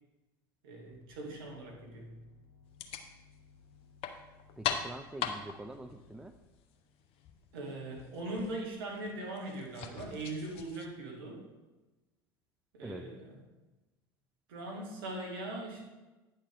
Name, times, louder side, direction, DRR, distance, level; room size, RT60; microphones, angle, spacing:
voice 1, 0.6-2.1 7.5-11.4 12.7-13.3 14.5-15.9, right 2 dB, 70° right, 0 dB, 2.0 m, -40 dB
sound 1, 0.9-6.4, left 5 dB, 75° left, 1.1 m, -61 dB
sound 2, 2.6-10.9, left 8 dB, 50° left, 0.8 m, -42 dB
voice 2, 4.6-6.3 12.8-13.1, right 1 dB, 5° right, 7 dB, 0.4 m, -45 dB
9.4 x 6.5 x 3.6 m, 1.1 s
hypercardioid pair, 75°, 12 cm